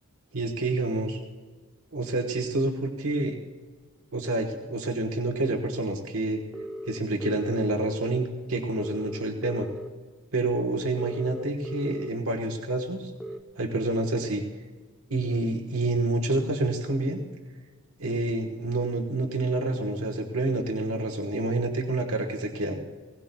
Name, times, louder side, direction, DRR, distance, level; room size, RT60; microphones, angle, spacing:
voice 1, 0.3-1.2 1.9-3.4 4.1-6.4 6.9-9.7 10.3-13.1 13.6-14.4 15.1-17.2 18.0-22.8, right 2 dB, 80° right, 2 dB, 1.3 m, -28 dB
sound 1, 6.5-7.7 8.8-9.9 11.0-12.1 13.2-13.4, equal, ahead, 0.6 m, -38 dB
20.0 x 17.5 x 2.3 m, 1.4 s
head